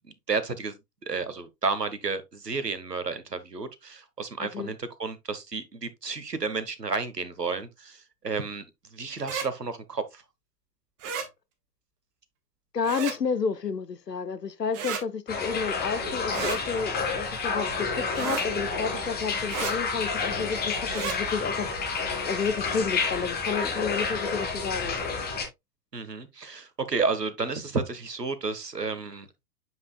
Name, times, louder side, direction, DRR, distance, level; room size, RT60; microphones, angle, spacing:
voice 1, 0.3-0.8 1.0-8.7 8.9-10.2 25.9-29.3, right 4 dB, 85° right, 1.2 m, -31 dB
voice 2, 4.4-4.7 12.7-21.9 22.2-25.0, left 5 dB, 85° left, 0.9 m, -31 dB
sound 1, 9.2-9.5 11.0-11.3 12.8-13.2 14.7-15.0 16.3-16.6 18.1-18.5 19.5-19.7 20.9-21.2, right 6 dB, 30° right, 1.8 m, -32 dB
sound 2, 15.3-25.5, left 4 dB, 20° left, 2.0 m, -30 dB
7.8 x 5.8 x 2.2 m
figure-of-eight pair, 100°, 47 cm